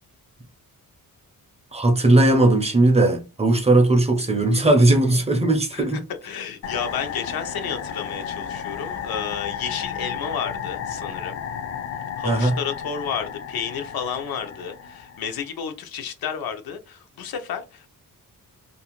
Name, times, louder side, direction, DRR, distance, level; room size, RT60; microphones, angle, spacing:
voice 1, 1.7-6.0 12.2-12.5, right 2 dB, 20° right, 0.4 m, -18 dB
voice 2, 5.7-11.4 12.2-17.9, left 7 dB, 85° left, 0.6 m, -31 dB
sound 1, 6.6-15.4, left 8 dB, 45° left, 0.4 m, -33 dB
2.5 x 2.4 x 2.9 m
wide cardioid pair, 145°, 35 cm